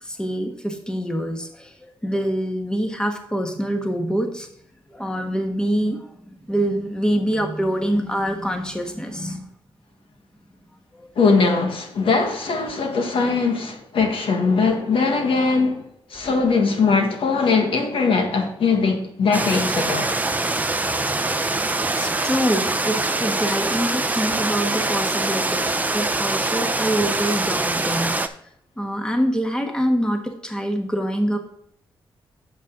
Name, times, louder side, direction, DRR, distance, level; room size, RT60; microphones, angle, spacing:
voice 1, 0.0-4.5 4.9-9.5 10.9-11.1 21.8-28.3 28.8-31.4, equal, 10° left, 1.3 m, -25 dB
voice 2, 11.1-15.8 16.1-20.1, left 4 dB, 75° left, 1.6 m, -20 dB
sound 1, 19.3-28.3, right 2 dB, 15° right, 0.6 m, -24 dB
8.6 x 6.8 x 3.7 m
wide cardioid pair, 105°, 9 cm